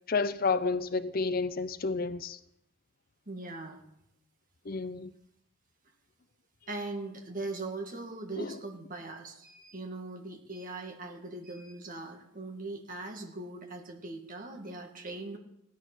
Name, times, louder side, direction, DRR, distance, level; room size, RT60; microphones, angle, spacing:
voice 1, 0.1-2.4 4.7-5.1 8.4-8.6, left 4 dB, 45° left, 0.6 m, -30 dB
voice 2, 3.3-3.8 6.7-15.4, right 2 dB, 40° right, 2.3 m, -40 dB
16.5 x 10.5 x 6.3 m
head